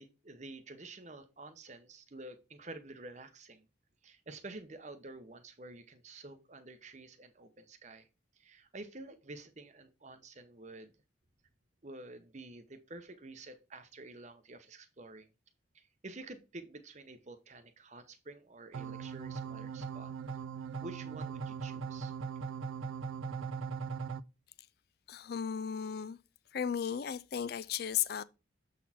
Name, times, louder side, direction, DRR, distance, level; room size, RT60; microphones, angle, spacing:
voice 1, 0.0-3.7 4.0-8.1 8.4-10.9 11.8-15.3 15.7-20.1 20.8-22.1, right 2 dB, 35° right, 0.8 m, -49 dB
sound 1, 18.7-24.2, right 6 dB, 85° right, 0.4 m, -39 dB
voice 2, 25.1-26.2 26.5-28.2, left 8 dB, 50° left, 0.4 m, -35 dB
7.5 x 4.1 x 4.2 m
head